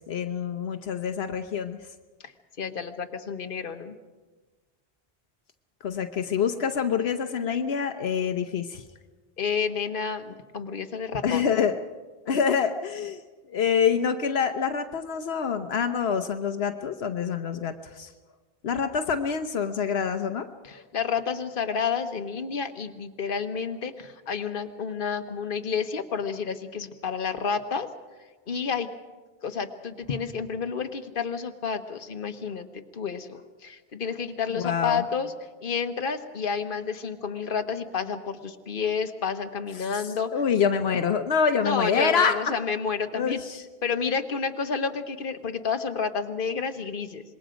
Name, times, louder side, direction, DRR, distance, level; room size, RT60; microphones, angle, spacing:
voice 1, 0.1-1.8 5.8-8.8 11.2-11.7 12.3-13.2 13.5-18.1 18.6-20.5 34.5-35.0 39.8-40.0 40.3-42.5 43.1-43.6, left 6 dB, 80° left, 7 dB, 1.1 m, -26 dB
voice 2, 2.6-4.0 9.4-11.4 20.6-27.9 28.5-28.9 29.4-35.3 35.6-40.3 41.6-43.4 43.8-47.2, left 6 dB, 60° left, 7 dB, 1.3 m, -30 dB
26.0 x 21.5 x 5.2 m, 1.3 s
omnidirectional pair, 1.0 m